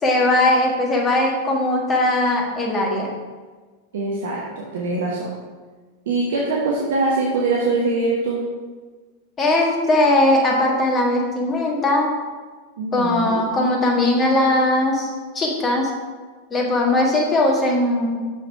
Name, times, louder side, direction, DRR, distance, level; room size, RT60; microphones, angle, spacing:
voice 1, 0.0-3.1 9.4-12.1 12.9-15.9 16.5-18.2, left 1 dB, 20° left, -1 dB, 1.6 m, -19 dB
voice 2, 3.9-5.4 6.1-8.4 12.8-13.4, right 3 dB, 60° right, -3 dB, 1.0 m, -23 dB
6.2 x 5.6 x 4.7 m, 1.4 s
figure-of-eight pair, 90°, 0 cm